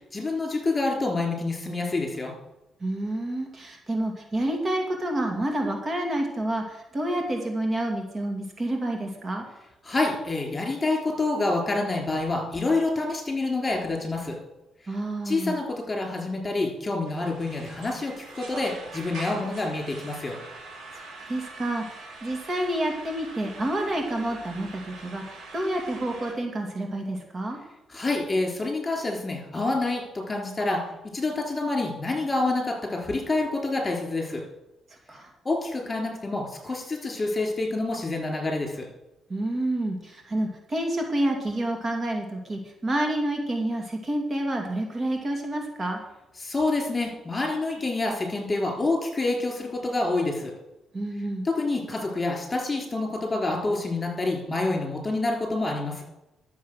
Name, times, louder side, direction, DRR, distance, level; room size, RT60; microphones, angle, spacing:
voice 1, 0.1-2.3 9.8-14.4 15.2-20.4 27.9-34.4 35.4-38.9 46.4-50.5 51.4-56.0, left 2 dB, 25° left, 2 dB, 4.0 m, -27 dB
voice 2, 2.8-9.4 14.9-15.6 20.9-27.6 35.1-35.3 39.3-46.0 50.9-51.4, right 1 dB, 30° right, 2 dB, 2.4 m, -29 dB
sound 1, 17.1-26.3, right 3 dB, 55° right, 4.3 m, -43 dB
12.0 x 7.5 x 6.4 m, 0.93 s
cardioid pair, 90°, 0 cm